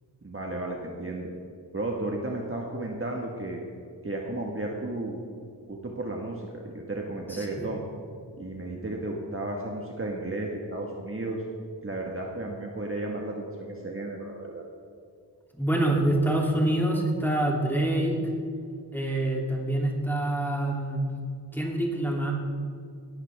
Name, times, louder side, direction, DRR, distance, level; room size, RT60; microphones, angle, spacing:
voice 1, 0.2-1.3 1.7-3.6 4.0-5.2 5.7-7.8 8.4-11.4 11.8-14.6, right 2 dB, 30° right, -1 dB, 1.6 m, -33 dB
voice 2, 7.3-7.7 15.5-18.2 18.9-21.0 21.5-22.3, right 1 dB, 5° left, -2 dB, 2.9 m, -26 dB
19.0 x 14.5 x 3.5 m, 2.3 s
wide cardioid pair, 90°, 45 cm